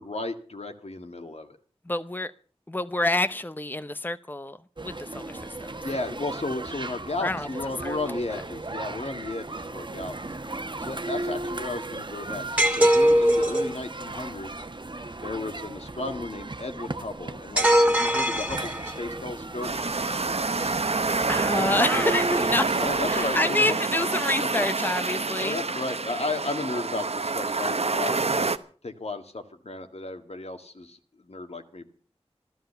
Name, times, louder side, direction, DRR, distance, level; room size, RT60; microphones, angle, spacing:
voice 1, 0.0-1.6 5.8-10.5 10.8-12.4 12.7-14.7 15.2-19.7 22.8-23.7 24.4-24.7 25.4-28.5 28.8-31.9, left 2 dB, 75° left, 1.9 m, -34 dB
voice 2, 1.9-2.3 2.7-5.7 7.2-7.5 7.8-8.4 20.8-22.7 23.1-25.6, left 2 dB, 20° left, 0.7 m, -28 dB
sound 1, 4.8-23.4, right 2 dB, 45° right, 1.1 m, -36 dB
sound 2, 12.6-13.8 17.6-19.1, equal, 10° right, 2.3 m, -21 dB
sound 3, 19.6-28.6, right 3 dB, 75° right, 0.9 m, -27 dB
14.0 x 13.0 x 6.8 m
wide cardioid pair, 50°, 11 cm